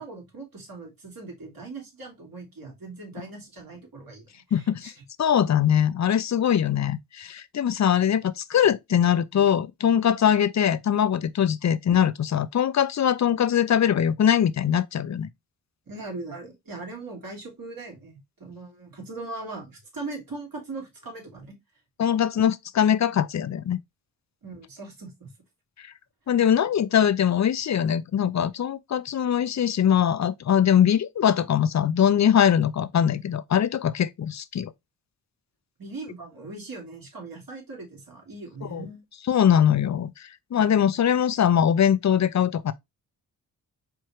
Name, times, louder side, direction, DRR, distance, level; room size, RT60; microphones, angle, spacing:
voice 1, 0.0-4.9 15.9-21.6 24.4-25.3 35.8-39.0, right 3 dB, 60° right, 2.7 m, -40 dB
voice 2, 4.5-4.9 5.2-15.3 22.0-23.8 26.3-34.7 38.7-38.9 39.3-42.7, left 9 dB, 45° left, 0.6 m, -22 dB
4.5 x 3.6 x 3.1 m
cardioid pair, 50°, 40 cm